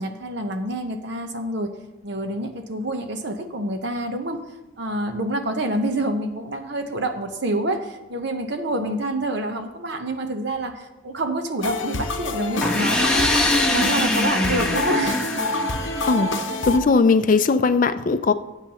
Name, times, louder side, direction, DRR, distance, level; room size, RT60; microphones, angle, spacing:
voice 1, 0.0-1.7 2.0-4.4 4.8-13.3 13.6-15.4 15.8-16.0, right 1 dB, 55° right, 6 dB, 1.0 m, -27 dB
sound 1, 11.6-16.8, left 2 dB, 60° left, 0.8 m, -27 dB
sound 2, 12.6-16.4, left 1 dB, 5° left, 1.1 m, -23 dB
voice 2, 16.7-18.3, left 4 dB, 40° left, 11 dB, 0.4 m, -18 dB
16.0 x 8.0 x 3.0 m, 1.2 s
head